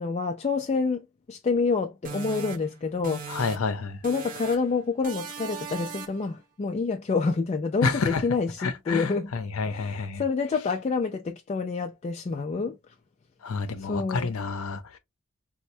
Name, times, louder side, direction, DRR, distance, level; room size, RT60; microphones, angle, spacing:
voice 1, 0.0-3.4 4.0-9.3 9.7-12.8 13.8-14.3, left 4 dB, 30° left, 0.3 m, -28 dB
sound 1, 2.0-3.8 4.0-4.7 5.0-6.3, right 6 dB, 40° right, 0.5 m, -39 dB
voice 2, 3.3-4.0 7.8-8.2 8.6-10.2 13.4-15.0, left 4 dB, 75° left, 0.6 m, -29 dB
4.3 x 2.1 x 2.6 m
head